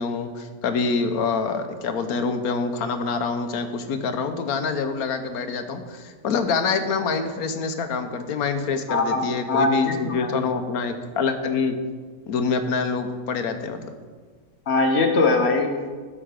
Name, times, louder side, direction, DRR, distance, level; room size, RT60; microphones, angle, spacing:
voice 1, 0.0-11.8 12.3-13.9, left 5 dB, 80° left, 8 dB, 1.3 m, -26 dB
voice 2, 8.9-10.3 14.7-15.7, left 3 dB, 50° left, 5 dB, 1.2 m, -21 dB
12.0 x 5.7 x 5.1 m, 1.5 s
omnidirectional pair, 1.5 m